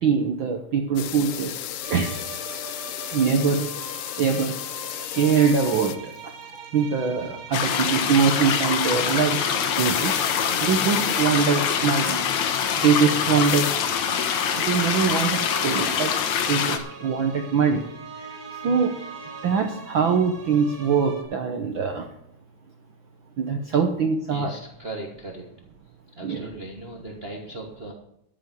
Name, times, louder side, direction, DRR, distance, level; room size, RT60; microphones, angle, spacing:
voice 1, 0.0-1.6 1.9-2.1 3.1-3.7 4.2-4.6 5.1-6.1 6.7-9.4 9.7-10.1 10.6-12.2 12.8-13.7 14.6-16.1 16.5-17.8 18.6-18.9 19.4-22.1 23.4-24.6 26.2-26.5, right 6 dB, 70° right, 4 dB, 1.1 m, -23 dB
sound 1, 1.0-6.2 6.5-6.7 9.7-11.3 11.6-11.7 11.9-12.0 13.4-13.8 14.2-14.3, left 12 dB, 90° left, 1.3 m, -33 dB
sound 2, 1.8-21.2, right 3 dB, 35° right, 3.7 m, -41 dB
sound 3, 7.5-16.8, left 7 dB, 70° left, 2.5 m, -24 dB
voice 2, 24.3-25.5 26.2-27.9, right 2 dB, 55° right, 0 dB, 0.6 m, -37 dB
14.0 x 7.0 x 7.7 m, 0.78 s
omnidirectional pair, 3.5 m